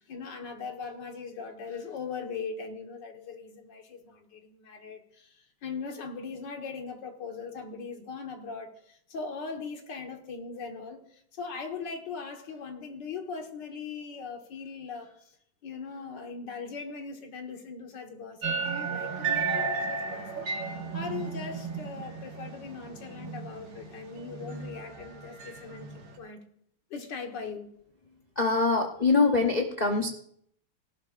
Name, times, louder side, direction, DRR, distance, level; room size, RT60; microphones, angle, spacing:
voice 1, 0.0-15.4 15.6-20.4 20.9-26.4 26.9-27.7, left 5 dB, 65° left, 3 dB, 2.1 m, -40 dB
sound 1, 18.4-26.2, right 5 dB, 70° right, 2.4 m, -34 dB
voice 2, 28.4-30.1, left 3 dB, 45° left, 3 dB, 0.5 m, -24 dB
18.0 x 11.5 x 2.5 m, 0.67 s
omnidirectional pair, 2.1 m